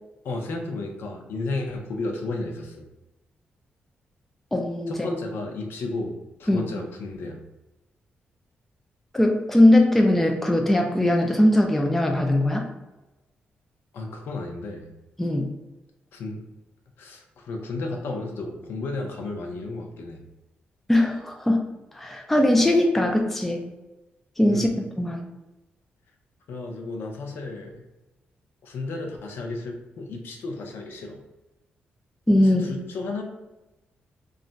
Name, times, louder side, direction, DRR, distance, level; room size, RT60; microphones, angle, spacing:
voice 1, 0.2-2.9 4.9-7.4 13.9-14.9 16.1-16.4 17.0-20.2 24.5-24.7 26.5-27.8 28.6-31.2 32.4-33.2, left 2 dB, 75° left, 2 dB, 0.5 m, -33 dB
voice 2, 4.5-5.1 6.5-6.7 9.1-12.7 15.2-15.4 20.9-21.7 22.0-23.7 24.4-25.2 32.3-32.6, left 1 dB, 5° left, 2 dB, 0.3 m, -20 dB
2.4 x 2.1 x 3.8 m, 1.0 s
wide cardioid pair, 160°, 4 cm